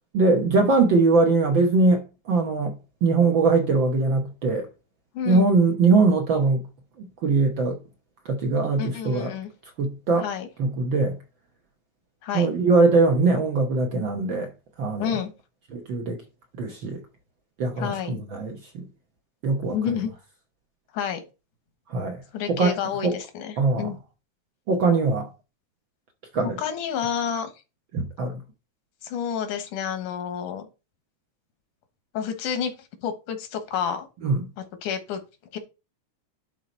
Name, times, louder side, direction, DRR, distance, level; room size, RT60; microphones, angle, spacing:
voice 1, 0.1-2.8 3.0-4.7 5.2-6.6 7.0-7.8 8.2-9.3 9.8-10.3 10.6-11.2 12.3-14.5 14.8-15.2 15.7-16.2 16.5-17.0 17.6-18.9 19.4-19.8 21.9-22.2 22.5-23.2 23.6-23.9 24.7-25.3 26.3-26.6 27.9-28.4 34.2-34.5, right 3 dB, 65° right, 1.2 m, -22 dB
voice 2, 5.1-5.5 8.8-9.5 10.2-10.5 12.2-12.5 15.0-15.3 17.8-18.2 19.7-20.1 20.9-21.2 22.3-24.0 26.6-27.5 29.0-30.7 32.1-32.7 33.0-34.1 34.8-35.2 35.5-35.6, left 8 dB, 85° left, 2.7 m, -29 dB
11.0 x 3.9 x 4.2 m
omnidirectional pair, 3.5 m